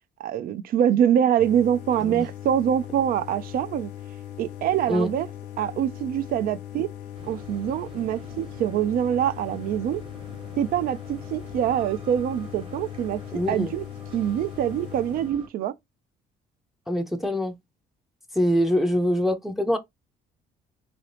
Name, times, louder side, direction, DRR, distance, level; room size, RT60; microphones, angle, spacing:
voice 1, 0.2-3.9 4.4-5.3 5.6-6.9 7.3-10.0 10.6-13.2 13.5-13.9 14.1-15.7, right 10 dB, 60° right, 0.4 m, -24 dB
sound 1, 1.4-15.3, left 11 dB, 90° left, 0.6 m, -39 dB
sound 2, 7.1-15.5, right 2 dB, 30° right, 1.1 m, -46 dB
voice 2, 13.3-13.7 16.9-17.5 18.3-19.8, equal, ahead, 0.5 m, -24 dB
2.9 x 2.7 x 3.1 m
cardioid pair, 110°, 17 cm